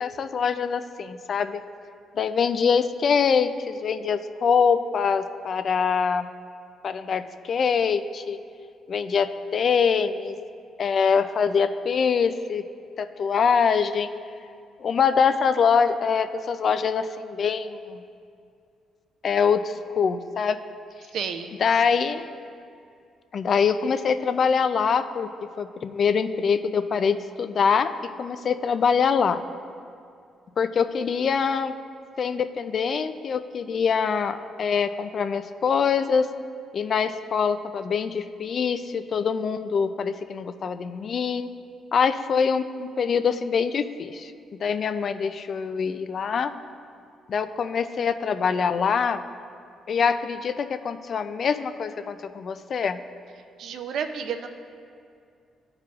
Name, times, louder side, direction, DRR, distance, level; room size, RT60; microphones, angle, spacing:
voice 1, 0.0-1.6 2.1-6.3 6.8-8.4 8.9-10.3 10.8-12.6 13.0-14.1 14.8-18.0 19.2-20.6 21.6-22.3 23.3-25.3 25.6-29.4 30.6-31.7 32.2-36.3 36.7-41.5 41.9-46.5 47.3-49.2 49.9-53.0, left 6 dB, 55° left, 11 dB, 0.3 m, -24 dB
voice 2, 21.1-21.5 53.6-54.5, right 7 dB, 70° right, 7 dB, 0.5 m, -31 dB
13.5 x 4.7 x 2.4 m, 2.4 s
cardioid pair, 90°, 0 cm